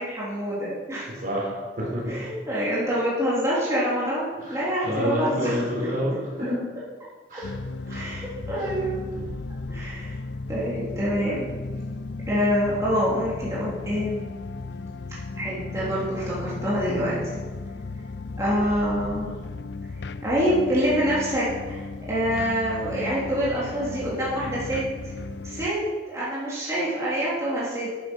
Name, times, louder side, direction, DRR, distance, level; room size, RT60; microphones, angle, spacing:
voice 1, 0.0-1.1 2.0-5.9 6.4-6.5 7.9-9.0 9.7-10.1 10.5-11.5 12.3-14.2 15.4-17.2 18.4-19.3 20.2-21.8 22.1-24.8 25.4-27.9, equal, 20° right, -9 dB, 3.3 m, -26 dB
voice 2, 1.1-2.2 4.4-6.7 7.3-7.5 7.9-8.2 8.6-8.7 9.1-9.3 18.4-18.6, equal, 50° right, -3 dB, 4.3 m, -29 dB
sound 1, 7.4-25.7, left 3 dB, 75° left, 0.5 m, -35 dB
9.8 x 9.7 x 6.3 m, 1.4 s
head